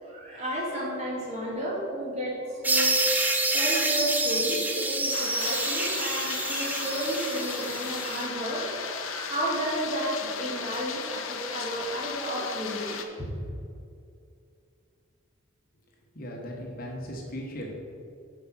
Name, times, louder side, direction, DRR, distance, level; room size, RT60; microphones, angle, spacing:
voice 1, 0.0-3.1 3.5-13.3, right 1 dB, 30° right, -5 dB, 2.2 m, -32 dB
sound 1, 2.6-8.2, right 2 dB, 10° right, 0.5 m, -27 dB
sound 2, 5.1-13.0, left 6 dB, 70° left, 0.7 m, -36 dB
voice 2, 16.1-17.8, equal, 40° left, -1 dB, 1.1 m, -37 dB
7.3 x 5.3 x 6.1 m, 2.4 s
head